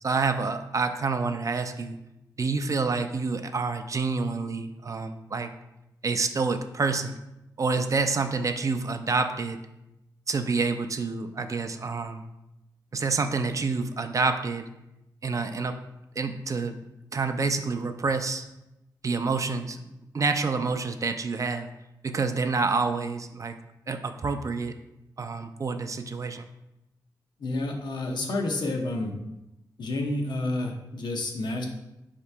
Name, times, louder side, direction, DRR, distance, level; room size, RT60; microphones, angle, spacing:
voice 1, 0.0-2.0 2.4-5.5 6.0-7.2 7.6-9.6 10.3-12.2 12.9-14.6 15.2-15.8 16.2-16.8 17.1-18.4 19.0-19.8 20.1-21.7 22.0-23.6 23.9-24.7 25.2-26.5, right 4 dB, 45° right, 8 dB, 0.3 m, -28 dB
voice 2, 27.4-29.1 29.8-31.7, left 2 dB, 80° left, 1 dB, 0.6 m, -29 dB
4.6 x 2.9 x 3.3 m, 0.92 s
cardioid pair, 75°, 8 cm